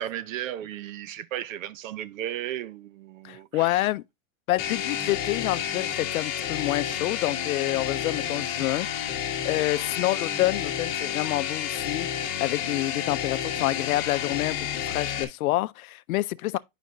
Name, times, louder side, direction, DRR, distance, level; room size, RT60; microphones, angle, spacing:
voice 1, 0.0-3.9, right 12 dB, 65° right, 0.7 m, -35 dB
voice 2, 3.2-4.0 4.5-8.9 9.1-12.1 12.4-16.6, left 17 dB, 75° left, 0.6 m, -28 dB
sound 1, 4.6-15.2, left 9 dB, 30° left, 1.3 m, -30 dB
9.3 x 5.0 x 2.5 m
supercardioid pair, 175°, 42 cm